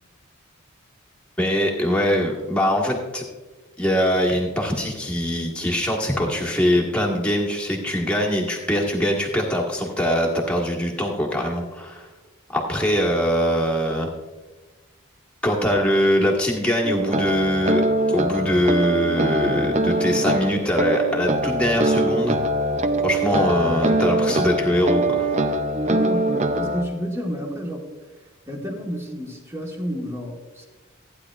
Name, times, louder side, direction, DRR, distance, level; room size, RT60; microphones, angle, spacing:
voice 1, 1.4-3.2 3.8-12.1 12.5-14.1 15.4-17.8 18.1-22.4 23.0-25.3, equal, 5° left, -2 dB, 1.5 m, -22 dB
sound 1, 16.8-26.9, right 1 dB, 30° right, 0.5 m, -23 dB
voice 2, 25.7-27.8 28.5-30.7, equal, 15° right, 0 dB, 1.5 m, -30 dB
15.0 x 9.7 x 2.4 m, 1.2 s
head